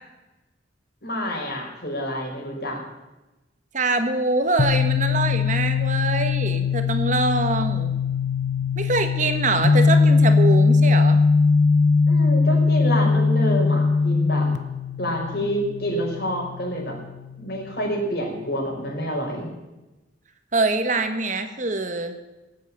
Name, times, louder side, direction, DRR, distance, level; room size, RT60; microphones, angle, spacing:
voice 1, 1.0-2.8 12.1-14.5 15.0-16.9 17.4-19.5, equal, 60° left, -1 dB, 5.1 m, -28 dB
voice 2, 3.7-7.9 8.8-11.2 20.5-22.2, right 3 dB, 45° right, 8 dB, 1.4 m, -24 dB
sound 1, 4.6-18.2, left 4 dB, 80° left, 1.1 m, -21 dB
18.5 x 8.4 x 8.8 m, 1.1 s
head